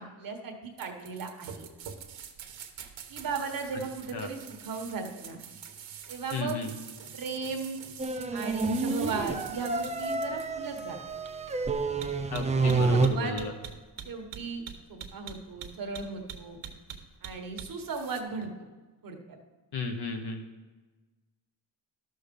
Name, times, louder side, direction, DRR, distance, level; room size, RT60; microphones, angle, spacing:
voice 1, 0.0-1.7 3.1-5.4 6.1-6.6 7.1-7.8 8.3-11.0 12.6-13.5 14.0-14.6 14.9-16.6 17.2-18.5 19.0-19.4, right 4 dB, 50° right, 4 dB, 1.2 m, -36 dB
sound 1, 0.8-18.2, right 7 dB, 80° right, 1.1 m, -44 dB
voice 2, 6.3-6.7 12.3-13.5 19.7-20.4, left 3 dB, 60° left, 5 dB, 1.2 m, -33 dB
sound 2, 8.0-13.1, right 3 dB, 15° right, 0.4 m, -29 dB
12.5 x 6.5 x 5.2 m, 1.3 s
wide cardioid pair, 160°, 45 cm